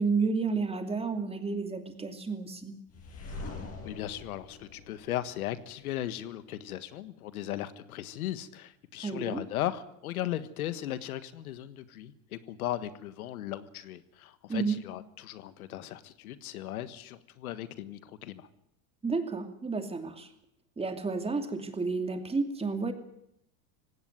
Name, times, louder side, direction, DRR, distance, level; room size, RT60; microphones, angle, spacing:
voice 1, 0.0-2.8 9.0-9.4 14.5-14.8 19.0-20.3 20.8-22.9, right 4 dB, 15° right, 7 dB, 2.7 m, -31 dB
sound 1, 2.9-5.9, left 3 dB, 35° left, 7.4 m, -43 dB
voice 2, 3.4-18.5, left 13 dB, 90° left, 13 dB, 1.6 m, -37 dB
18.5 x 17.0 x 9.5 m, 0.76 s
supercardioid pair, 115°, 42 cm